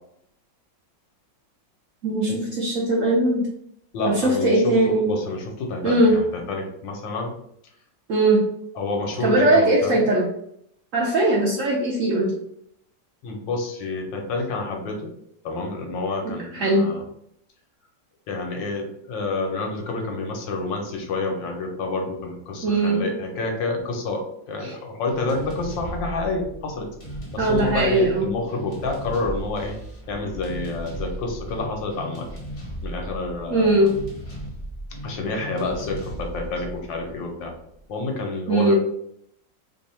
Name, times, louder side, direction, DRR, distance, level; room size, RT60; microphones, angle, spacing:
voice 1, 2.0-3.5 4.1-5.1 5.8-6.2 8.1-8.4 9.2-10.3 10.9-12.3 16.5-16.9 22.6-23.1 24.6-24.7 27.4-28.3 33.5-33.9 38.5-38.7, right 1 dB, 65° right, -3 dB, 0.8 m, -20 dB
voice 2, 3.9-7.3 8.7-10.0 13.2-15.1 15.4-17.0 18.3-26.9 27.3-29.8 30.1-32.3 32.8-33.9 35.0-37.5 37.9-38.8, left 3 dB, 80° left, 2 dB, 1.5 m, -28 dB
sound 1, 25.1-37.8, right 1 dB, 35° left, 0.8 m, -36 dB
3.4 x 2.3 x 4.2 m, 0.73 s
omnidirectional pair, 2.0 m